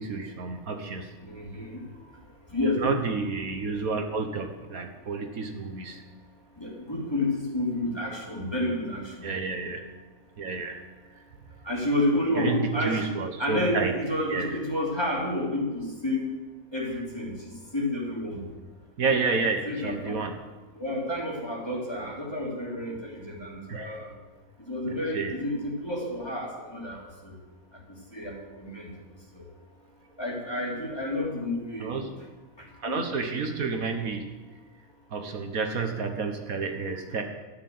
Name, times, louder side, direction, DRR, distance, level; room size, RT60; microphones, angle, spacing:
voice 1, 0.0-1.1 2.6-6.0 9.2-9.8 10.4-10.8 12.3-13.9 14.3-14.6 19.0-20.3 23.7-23.9 24.9-25.3 31.8-32.1 32.8-34.2 35.1-37.2, right 4 dB, 70° right, 5 dB, 1.7 m, -30 dB
voice 2, 1.2-1.9 2.5-3.0 6.6-9.3 11.6-13.1 13.4-16.3 16.7-18.4 19.7-20.2 20.7-24.1 24.6-27.4 27.7-28.9 29.3-29.4 30.2-32.1 32.6-33.0, left 1 dB, 15° left, -3 dB, 3.3 m, -30 dB
13.0 x 9.8 x 7.8 m, 1.2 s
omnidirectional pair, 1.5 m